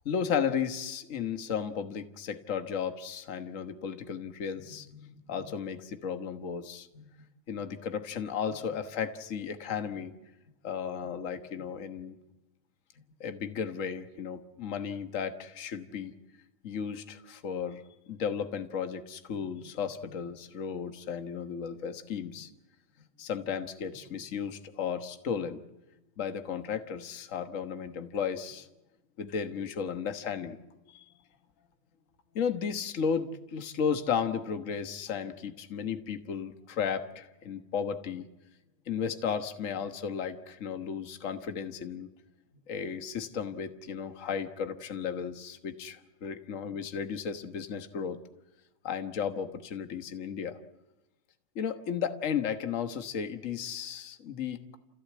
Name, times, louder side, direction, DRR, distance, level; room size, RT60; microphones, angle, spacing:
voice 1, 0.0-7.1 7.5-10.1 10.6-12.1 13.2-16.1 16.6-17.8 18.1-22.5 23.2-25.6 26.2-28.7 29.2-30.6 30.9-31.0 32.3-38.3 38.9-42.1 42.7-48.2 48.8-50.6 51.5-54.7, left 7 dB, 50° left, 8 dB, 0.9 m, -34 dB
29.0 x 15.5 x 8.5 m, 1.0 s
omnidirectional pair, 3.3 m